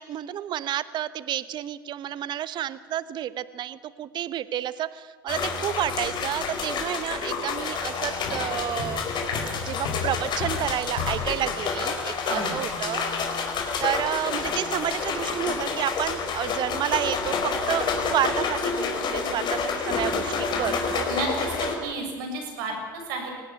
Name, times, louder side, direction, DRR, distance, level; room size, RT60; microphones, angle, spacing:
voice 1, 0.0-9.0 9.6-21.1, right 11 dB, 40° right, 16 dB, 1.0 m, -30 dB
sound 1, 5.3-21.7, left 5 dB, 40° left, 4.6 m, -29 dB
sound 2, 8.2-11.9, left 5 dB, 65° left, 6.7 m, -35 dB
voice 2, 12.3-12.6 21.1-23.3, right 3 dB, 65° right, 2 dB, 6.9 m, -32 dB
24.5 x 18.5 x 9.6 m, 1.4 s
hypercardioid pair, 75°, 11 cm